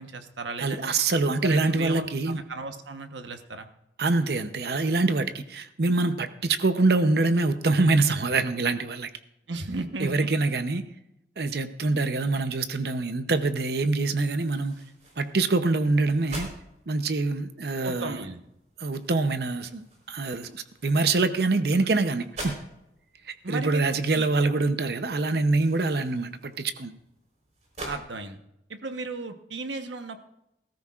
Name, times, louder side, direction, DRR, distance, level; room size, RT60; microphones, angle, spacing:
voice 1, 0.0-0.9 1.4-3.7 9.5-10.3 17.8-18.4 23.4-24.3 27.8-28.4 28.7-30.2, right 3 dB, 85° right, 7 dB, 1.1 m, -35 dB
voice 2, 0.6-2.4 4.0-9.1 10.0-10.8 11.4-14.8 15.2-16.5 16.9-18.2 18.8-19.8 20.1-22.6 23.3-26.9, right 3 dB, 60° right, 10 dB, 0.7 m, -25 dB
sound 1, 14.3-28.0, right 1 dB, 40° right, 4.0 m, -46 dB
19.5 x 13.5 x 2.4 m, 0.84 s
head